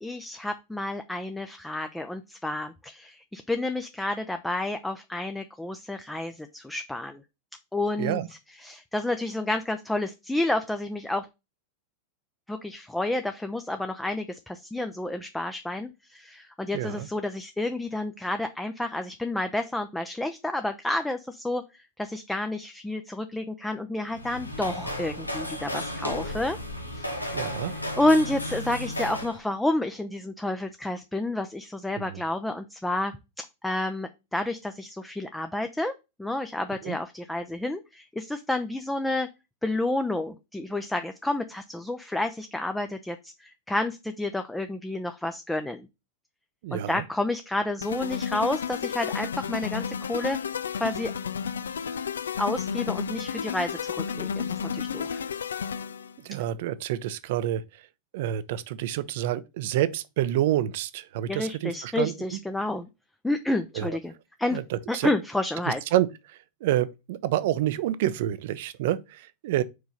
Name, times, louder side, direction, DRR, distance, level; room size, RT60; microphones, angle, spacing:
voice 1, 0.0-7.2 7.7-8.2 8.6-11.3 12.5-21.6 22.0-26.6 26.9-27.6 28.0-35.9 36.2-39.3 39.6-45.9 46.7-50.4 50.7-51.1 52.4-55.2 61.3-62.9 63.2-64.1 64.4-64.6 64.9-65.8, left 2 dB, 5° left, 0.6 m, -30 dB
voice 2, 16.7-17.1 27.3-27.7 32.0-32.2 36.8-37.0 46.6-47.0 56.2-57.6 58.1-62.4 63.8-64.0 64.5-65.1 65.9-66.1 66.6-69.6, right 12 dB, 50° right, 0.6 m, -28 dB
sound 1, 24.1-29.4, left 1 dB, 85° left, 1.1 m, -34 dB
sound 2, 47.8-56.1, left 7 dB, 70° left, 0.4 m, -32 dB
5.0 x 4.7 x 5.5 m
figure-of-eight pair, 90°, 0 cm